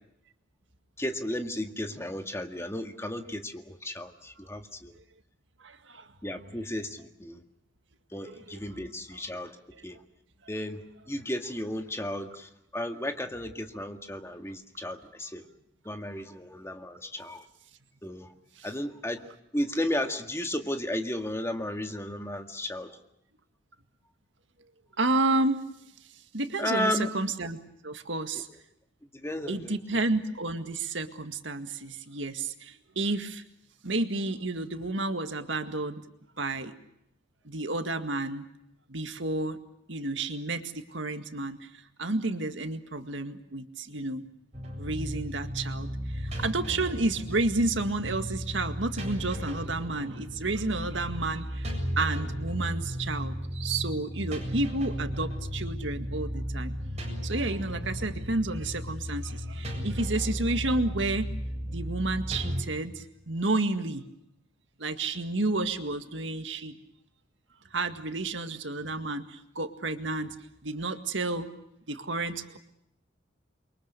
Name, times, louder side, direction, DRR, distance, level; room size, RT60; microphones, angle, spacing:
voice 1, 1.0-5.0 6.2-7.4 8.1-9.6 9.8-10.0 10.5-15.5 15.9-17.5 18.0-18.3 18.6-19.3 19.5-23.0 26.6-27.1 29.1-30.0, left 1 dB, 15° left, 6 dB, 1.9 m, -34 dB
voice 2, 5.6-6.1 8.2-8.6 18.6-18.7 25.0-25.6 26.3-27.6 27.8-28.5 29.5-33.4 33.8-36.0 36.4-36.7 37.5-38.4 38.9-39.6 39.9-41.6 42.0-44.2 44.8-51.7 52.0-56.8 57.2-61.3 61.7-64.0 64.8-66.7 67.7-70.3 70.6-71.5 71.9-72.6, right 2 dB, 70° right, 8 dB, 1.9 m, -31 dB
sound 1, 44.5-62.6, equal, 35° right, 7.7 m, -35 dB
29.5 x 23.5 x 6.7 m, 0.79 s
head